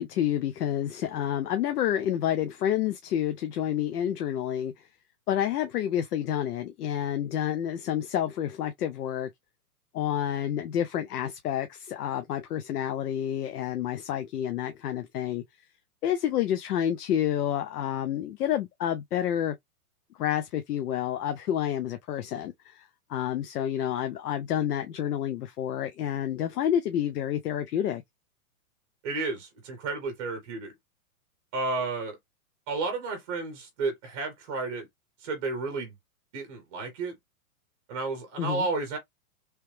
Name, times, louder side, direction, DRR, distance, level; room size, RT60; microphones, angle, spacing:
voice 1, 0.0-4.7 5.3-9.3 9.9-15.4 16.0-19.5 20.2-28.0 38.4-38.7, left 10 dB, 85° left, 0.7 m, -29 dB
voice 2, 29.0-30.7 31.5-32.2 32.7-34.9 35.2-35.9 36.3-37.2 37.9-39.0, right 3 dB, 25° right, 0.8 m, -32 dB
3.2 x 2.9 x 3.2 m
hypercardioid pair, 170°, 45 cm